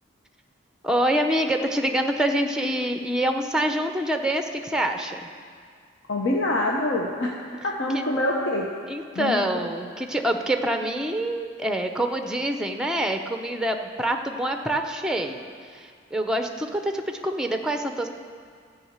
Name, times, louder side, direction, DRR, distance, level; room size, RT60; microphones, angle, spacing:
voice 1, 0.8-5.3 7.9-8.0 8.9-15.4 15.7-18.1, right 1 dB, 5° right, 5 dB, 0.6 m, -26 dB
voice 2, 6.1-7.3 7.6-8.7 9.1-9.4, left 1 dB, 65° left, -1 dB, 0.9 m, -25 dB
13.0 x 5.6 x 8.0 m, 2.1 s
head